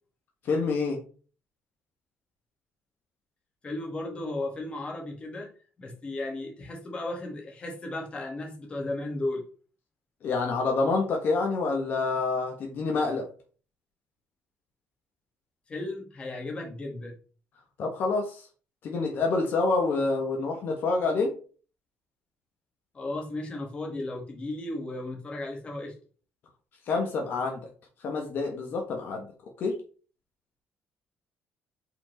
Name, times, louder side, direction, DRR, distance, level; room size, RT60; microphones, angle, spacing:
voice 1, 0.4-1.0 10.2-13.3 17.8-18.5 18.8-21.3 26.9-27.7 28.0-29.3 29.6-29.8, left 3 dB, 55° left, 1.4 m, -27 dB
voice 2, 3.6-5.5 5.8-9.5 15.7-17.2 22.9-26.0, left 2 dB, 25° left, 1.9 m, -35 dB
5.3 x 4.4 x 4.5 m
cardioid pair, 140°, 4 cm